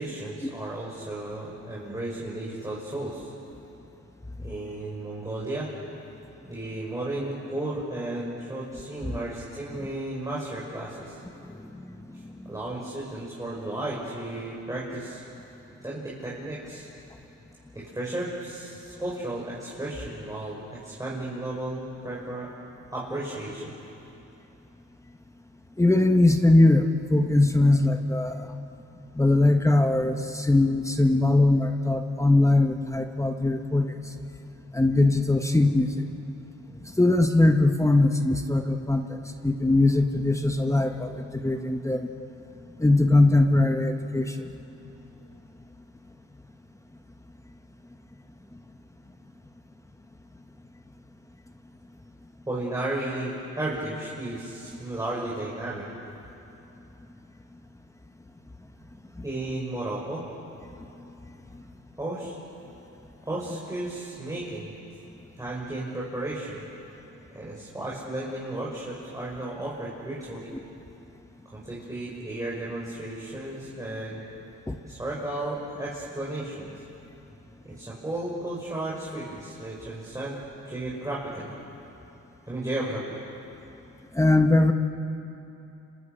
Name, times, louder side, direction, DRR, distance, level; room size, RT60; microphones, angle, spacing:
voice 1, 0.0-3.3 4.4-5.7 6.4-11.2 12.1-12.2 12.5-15.2 15.8-16.9 17.7-22.5 22.9-23.7 52.5-55.9 59.2-60.3 62.0-62.4 63.3-64.7 65.4-66.6 67.3-70.5 71.5-74.2 74.8-76.7 77.6-80.4 80.6-81.5 82.5-83.2, right 1 dB, 10° right, -6 dB, 6.0 m, -34 dB
voice 2, 25.8-28.5 29.1-33.9 34.7-35.9 37.0-39.1 39.4-42.1 42.8-44.4 74.7-74.8 84.1-84.7, left 2 dB, 10° left, 6 dB, 1.4 m, -21 dB
30.0 x 25.5 x 6.9 m, 2.9 s
cardioid pair, 90°, 30 cm